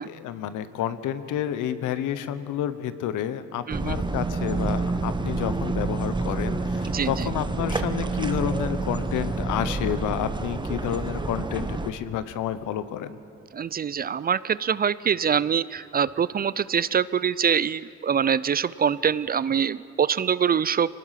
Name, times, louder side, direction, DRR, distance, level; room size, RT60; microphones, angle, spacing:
voice 1, 0.0-13.2, left 10 dB, 85° left, 13 dB, 1.0 m, -30 dB
sound 1, 3.7-11.9, right 3 dB, 15° right, 1.0 m, -28 dB
voice 2, 6.8-7.3 13.5-20.9, right 7 dB, 30° right, 19 dB, 0.4 m, -24 dB
24.0 x 19.0 x 5.8 m, 2.5 s
cardioid pair, 90°, 30 cm